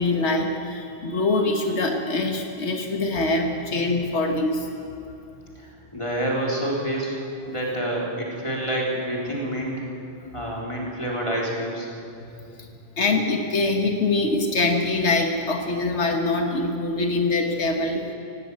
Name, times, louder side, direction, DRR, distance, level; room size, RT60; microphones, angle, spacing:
voice 1, 0.0-4.7 12.6-12.7 13.0-18.0, left 2 dB, 85° left, 3 dB, 1.6 m, -24 dB
voice 2, 5.6-7.2 7.5-9.8 10.3-11.9, right 1 dB, 30° left, -3 dB, 3.9 m, -28 dB
17.5 x 17.5 x 8.4 m, 2.7 s
omnidirectional pair, 1.1 m